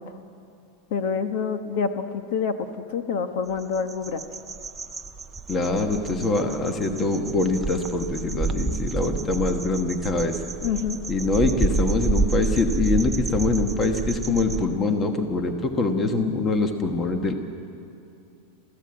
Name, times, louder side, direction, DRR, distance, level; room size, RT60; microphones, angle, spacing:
voice 1, 0.9-2.5 2.9-4.2 10.6-11.0, left 6 dB, 50° left, 8 dB, 1.2 m, -27 dB
sound 1, 3.6-14.6, right 4 dB, 10° right, 0.5 m, -29 dB
voice 2, 5.5-10.4 11.1-17.3, left 3 dB, 15° left, 6 dB, 1.2 m, -24 dB
27.0 x 15.5 x 8.8 m, 2.6 s
supercardioid pair, 175°, 0 cm